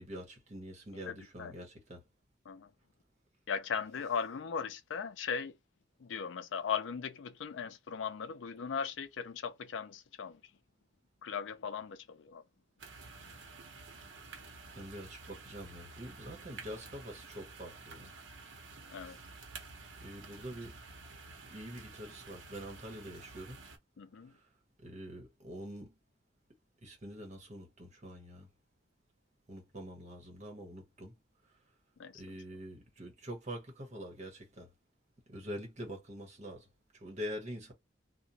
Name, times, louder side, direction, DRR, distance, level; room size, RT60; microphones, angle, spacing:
voice 1, 0.0-2.0 14.7-18.1 19.0-19.2 20.0-20.8 21.5-23.6 24.3-24.4 24.8-25.9 26.8-28.5 29.5-31.1 32.1-34.7 35.3-36.7 36.9-37.7, equal, 40° right, 1.1 m, -45 dB
voice 2, 1.0-1.5 2.5-2.7 3.5-5.6 6.0-10.4 11.2-12.4 18.9-19.2 24.0-24.3 32.0-32.4, left 6 dB, 75° left, 0.4 m, -38 dB
sound 1, 12.8-23.8, right 4 dB, 75° right, 0.8 m, -51 dB
2.9 x 2.1 x 2.7 m
head